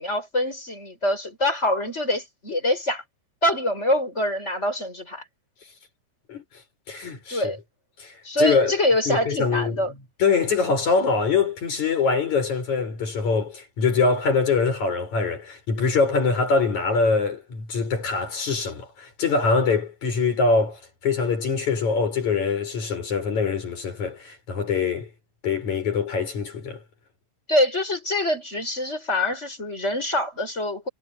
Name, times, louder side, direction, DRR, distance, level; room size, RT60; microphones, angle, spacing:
voice 1, 0.0-3.0 3.4-5.2 7.3-7.6 8.2-9.9 27.5-30.9, left 1 dB, 20° left, 6.3 m, -25 dB
voice 2, 6.9-7.5 8.0-8.8 9.1-9.8 10.2-25.1 25.4-26.8, left 4 dB, 75° left, 7.5 m, -23 dB
omnidirectional pair, 3.3 m